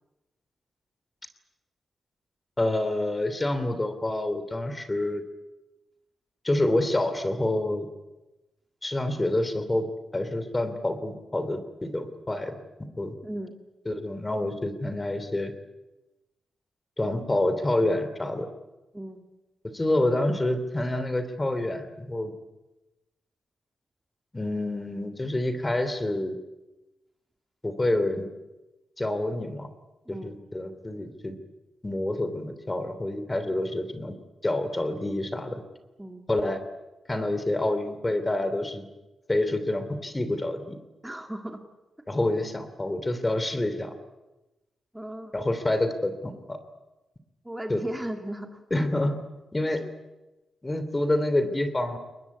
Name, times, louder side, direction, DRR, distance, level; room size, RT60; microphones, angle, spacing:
voice 1, 2.6-5.2 6.4-7.9 8.8-9.9 10.1-12.5 13.0-13.1 13.9-15.5 17.0-18.5 19.7-22.3 24.3-26.4 27.6-28.3 29.0-29.7 30.1-31.4 31.8-34.2 34.4-35.6 36.3-36.6 37.1-38.9 39.3-40.8 42.1-43.9 45.3-46.6 47.7-47.8 48.7-49.1 49.5-49.8 50.6-52.0, left 1 dB, 20° left, 10 dB, 2.9 m, -27 dB
voice 2, 13.2-13.6 18.9-19.3 30.1-30.4 36.0-36.3 41.0-41.6 44.9-45.3 47.4-48.6 49.8-49.9, right 1 dB, 10° right, 5 dB, 2.4 m, -36 dB
22.5 x 20.5 x 9.6 m, 1.0 s
cardioid pair, 75°, 0 cm